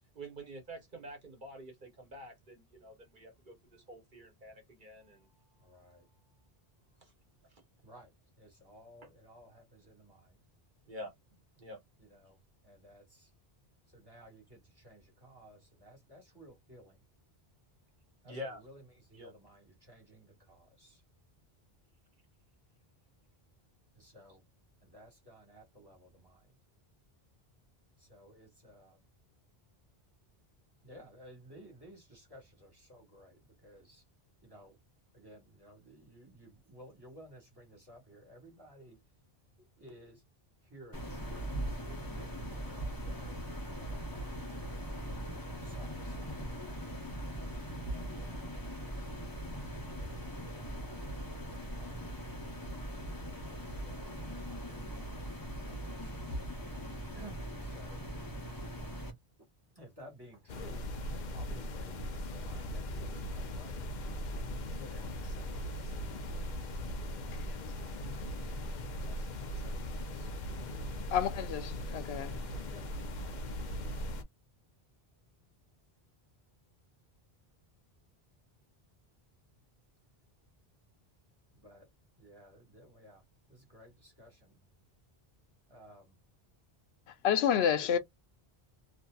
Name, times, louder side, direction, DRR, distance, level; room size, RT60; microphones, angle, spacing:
voice 1, 0.1-5.3 7.0-7.1 7.5-7.6 10.9-11.1 11.6-11.8 18.2-18.6 19.1-19.3, equal, 55° right, 1.0 m, -47 dB
voice 2, 4.9-6.5 7.8-10.4 12.0-13.3 13.9-17.1 18.2-21.0 23.9-24.4 24.8-26.6 28.0-29.0 30.8-34.0 34.4-34.8 35.1-39.0 39.6-40.2 40.6-43.4 43.8-44.9 45.5-46.4 47.8-49.2 49.8-52.0 53.6-55.2 55.6-56.4 57.1-58.0 59.7-63.8 64.6-66.5 69.0-70.3 72.7-73.1 81.5-81.9 82.2-83.2 83.5-84.6 85.7-86.2 87.5-87.9, right 1 dB, 25° right, 1.3 m, -56 dB
sound 1, 40.9-59.1, right 1 dB, 25° left, 0.7 m, -40 dB
sound 2, 60.5-74.2, equal, 55° left, 0.6 m, -39 dB
voice 3, 71.1-72.4 87.1-88.0, left 8 dB, 85° left, 0.8 m, -30 dB
2.7 x 2.5 x 2.3 m
omnidirectional pair, 1.0 m